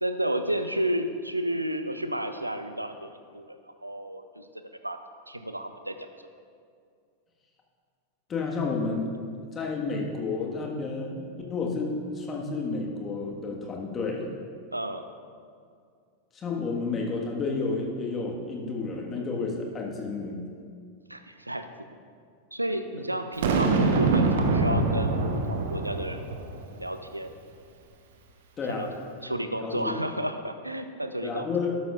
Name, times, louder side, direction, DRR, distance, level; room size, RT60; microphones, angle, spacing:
voice 1, 0.0-4.5 4.8-5.0 5.3-6.0 14.7-15.1 21.1-21.7 22.5-26.2 26.8-27.3 28.7-31.5, right 1 dB, 85° right, 9 dB, 0.5 m, -32 dB
voice 2, 8.3-9.1 9.5-14.3 16.3-20.4 28.6-28.9 29.2-29.3 29.6-29.9 31.2-31.8, left 4 dB, 25° left, -1 dB, 1.6 m, -31 dB
Boom, 23.4-26.7, right 3 dB, 55° right, 1.0 m, -24 dB
12.5 x 12.0 x 2.5 m, 2.2 s
figure-of-eight pair, 90°, 0 cm